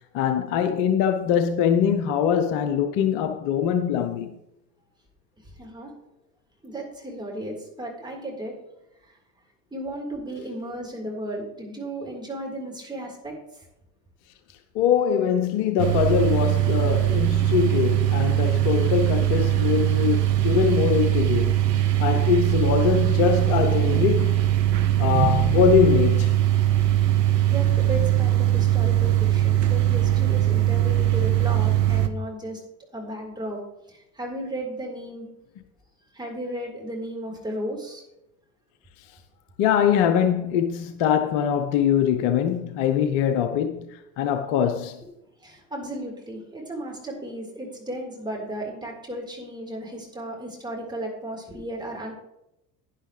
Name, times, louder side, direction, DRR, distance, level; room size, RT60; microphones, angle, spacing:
voice 1, 0.1-4.3 14.7-21.6 22.0-24.4 25.0-26.4 39.6-45.0, left 8 dB, 55° left, 1.0 m, -23 dB
voice 2, 5.6-5.9 6.6-8.6 9.0-9.1 9.7-13.6 27.4-32.6 32.9-33.6 33.9-35.3 36.1-38.0 45.4-52.1, right 1 dB, 10° right, 4.3 m, -34 dB
sound 1, 15.8-32.1, right 12 dB, 80° right, 0.9 m, -21 dB
11.5 x 10.0 x 3.3 m
figure-of-eight pair, 70°, 48 cm